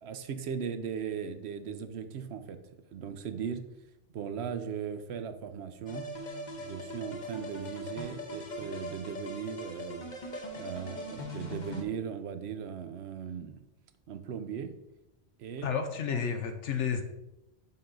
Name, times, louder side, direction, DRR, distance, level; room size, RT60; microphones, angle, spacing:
voice 1, 0.0-2.6 2.9-3.6 4.1-6.1 6.6-10.1 10.5-13.6 14.1-14.7 15.4-15.7 16.1-16.2, right 7 dB, 65° right, 10 dB, 0.9 m, -38 dB
sound 1, 5.9-11.8, equal, 40° left, 1.1 m, -40 dB
voice 2, 15.6-17.0, left 7 dB, 70° left, 6 dB, 1.1 m, -31 dB
7.5 x 5.7 x 3.8 m, 0.91 s
omnidirectional pair, 1.3 m